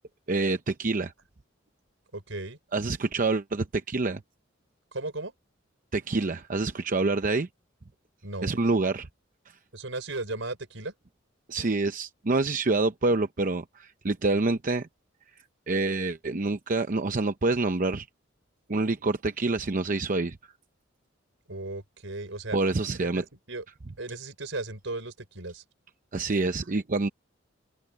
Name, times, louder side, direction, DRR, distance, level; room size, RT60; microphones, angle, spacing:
voice 1, 0.3-1.1 2.7-4.2 5.9-7.5 8.4-9.1 11.5-14.9 15.7-18.1 18.7-20.4 22.5-23.2 26.1-27.1, right 3 dB, 45° right, 0.7 m, -27 dB
voice 2, 2.1-2.6 4.9-5.3 8.2-8.6 9.7-10.9 21.5-22.6 23.0-23.7 24.0-25.6, right 2 dB, 75° right, 5.4 m, -36 dB
open air
head